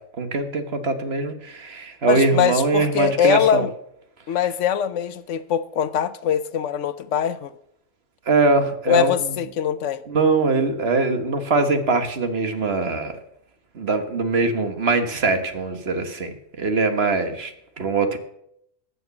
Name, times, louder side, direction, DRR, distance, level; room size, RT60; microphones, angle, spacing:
voice 1, 0.2-3.6 8.2-9.3 10.1-13.2 13.7-18.2, right 3 dB, 55° right, 1.6 m, -22 dB
voice 2, 2.1-3.7 4.3-7.5 8.9-10.0, left 9 dB, 70° left, 1.0 m, -22 dB
14.0 x 6.9 x 7.2 m
omnidirectional pair, 1.3 m